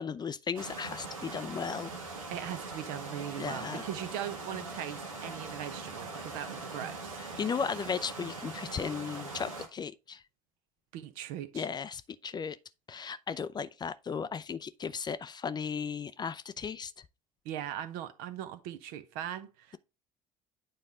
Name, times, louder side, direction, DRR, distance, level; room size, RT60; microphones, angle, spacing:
voice 1, 0.0-1.9 3.4-3.9 7.2-10.2 11.5-12.6 12.9-16.9, left 6 dB, 25° left, 0.5 m, -36 dB
sound 1, 0.5-9.7, right 3 dB, 85° right, 1.4 m, -41 dB
voice 2, 2.3-7.4 10.9-11.7 17.4-19.8, right 11 dB, 60° right, 0.8 m, -40 dB
9.2 x 4.2 x 3.6 m
figure-of-eight pair, 60°, 17 cm